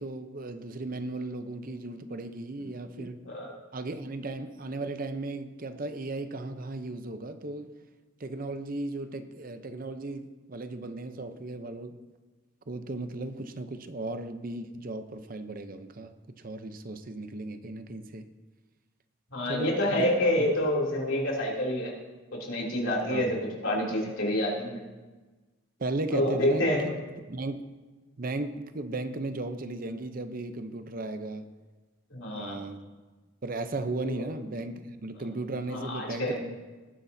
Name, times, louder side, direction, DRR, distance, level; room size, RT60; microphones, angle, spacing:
voice 1, 0.0-3.2 3.7-7.7 8.2-12.0 12.7-18.2 19.5-20.1 20.4-20.5 23.1-23.3 25.8-26.6 27.3-27.7 28.2-31.5 32.3-32.8 33.4-36.6, right 2 dB, 45° right, 9 dB, 0.7 m, -36 dB
voice 2, 19.3-21.9 22.4-24.8 26.1-26.9 32.1-32.6 34.0-34.2 35.7-36.4, left 1 dB, 80° left, -2 dB, 2.9 m, -28 dB
19.0 x 10.0 x 2.7 m, 1.2 s
head